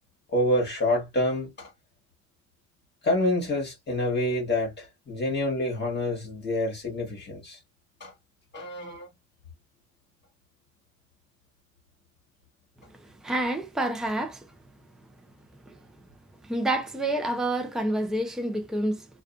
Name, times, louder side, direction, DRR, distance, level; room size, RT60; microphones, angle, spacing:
voice 1, 0.3-1.7 3.0-7.6 8.0-8.1 8.5-9.1, left 1 dB, 35° left, 1.3 m, -27 dB
voice 2, 13.2-14.5 16.5-19.1, right 1 dB, ahead, 0.6 m, -28 dB
2.4 x 2.4 x 2.4 m
cardioid pair, 90°, 30 cm